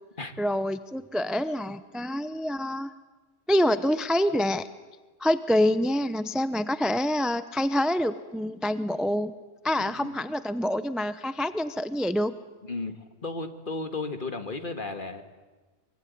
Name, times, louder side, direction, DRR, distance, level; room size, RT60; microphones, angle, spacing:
voice 1, 0.4-2.9 3.5-4.6 5.2-9.3 9.6-12.3, left 1 dB, ahead, 12 dB, 0.6 m, -26 dB
voice 2, 9.7-10.1 12.7-15.2, left 3 dB, 45° left, 7 dB, 2.0 m, -34 dB
24.0 x 23.5 x 9.5 m, 1.3 s
omnidirectional pair, 1.3 m